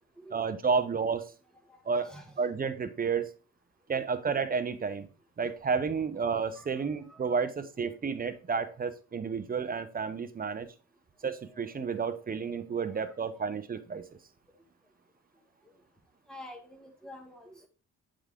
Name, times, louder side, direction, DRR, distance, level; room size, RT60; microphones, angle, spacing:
voice 1, 0.3-1.3 1.9-2.1 2.4-3.3 3.9-5.1 5.4-10.7 11.2-14.0, right 5 dB, 30° right, 12 dB, 0.7 m, -31 dB
voice 2, 1.5-2.4 4.7-4.9 5.8-5.9 6.5-7.5 8.1-8.2 8.5-8.8 11.2-11.7 12.9-13.2 16.3-17.7, left 1 dB, ahead, 3 dB, 1.5 m, -51 dB
7.8 x 3.8 x 3.5 m, 0.35 s
cardioid pair, 90°, 30 cm